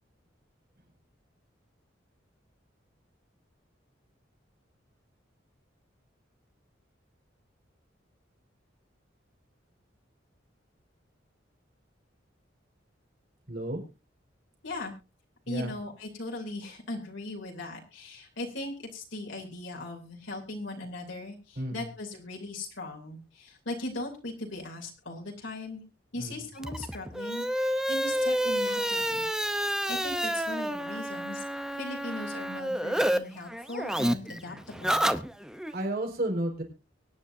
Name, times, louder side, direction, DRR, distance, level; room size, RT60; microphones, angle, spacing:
voice 1, 13.5-13.8 15.5-15.7 21.6-21.9 26.1-26.3 35.7-36.6, right 1 dB, 55° right, 3 dB, 4.6 m, -32 dB
voice 2, 15.5-25.8 26.1-29.2 29.9-31.4 31.8-35.0, left 2 dB, 75° left, 0 dB, 3.1 m, -39 dB
sound 1, 26.6-33.2 33.5-35.7, equal, 5° right, 0.8 m, -29 dB
24.5 x 10.0 x 2.7 m, 0.29 s
head